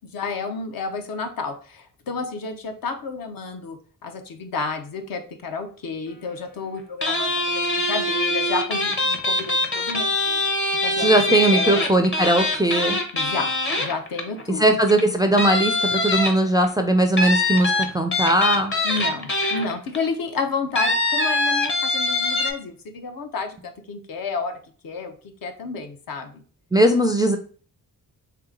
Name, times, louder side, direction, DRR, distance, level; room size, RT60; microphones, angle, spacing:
voice 1, 0.1-10.5 10.8-11.1 11.5-12.1 13.1-14.6 18.8-24.6 24.8-25.1 25.4-26.4, left 4 dB, 65° left, 6 dB, 0.8 m, -31 dB
sound 1, 7.0-14.4 14.9-15.0 15.4-16.7 17.2-20.0 20.8-22.5, left 2 dB, 30° left, 0.8 m, -23 dB
voice 2, 11.0-13.0 14.6-18.7 26.7-27.4, right 1 dB, 10° right, 5 dB, 0.3 m, -19 dB
3.3 x 2.9 x 3.7 m, 0.41 s
cardioid pair, 105°, 37 cm